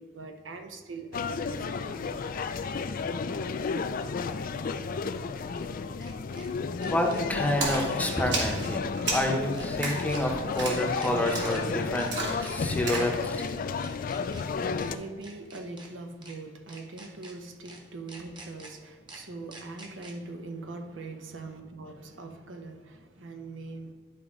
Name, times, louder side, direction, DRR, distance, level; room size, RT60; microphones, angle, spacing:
voice 1, 0.0-2.3 13.6-23.9, right 3 dB, 85° right, 0.8 m, -43 dB
sound 1, 1.1-15.0, left 5 dB, 45° left, 0.4 m, -32 dB
sound 2, 2.2-2.3 4.6-6.5 6.8-7.2 7.6-7.7 8.1-8.7 9.1-9.2 9.5-10.2 10.6-10.7 11.0-11.6 11.9-12.1 12.4-13.0 13.4-13.5 13.8-14.4 14.8-14.9 15.2-15.9 16.2-16.4 16.7-17.3 17.6-17.8 18.1-18.7 19.1-19.2 19.5-20.1, right 2 dB, 25° right, 1.1 m, -47 dB
voice 2, 6.9-12.1 12.4-13.4, left 1 dB, 10° left, 0.8 m, -29 dB
Splash splatter, 7.6-13.2, right 2 dB, 70° right, 2.0 m, -34 dB
11.0 x 4.9 x 3.6 m
head